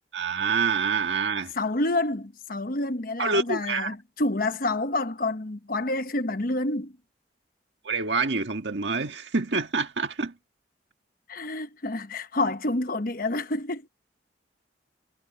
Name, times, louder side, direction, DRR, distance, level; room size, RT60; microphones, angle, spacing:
voice 1, 0.1-1.5 3.2-3.9 7.8-10.3, right 4 dB, 80° right, 1.6 m, -26 dB
voice 2, 1.6-6.9 11.3-13.9, left 2 dB, 50° left, 1.1 m, -28 dB
head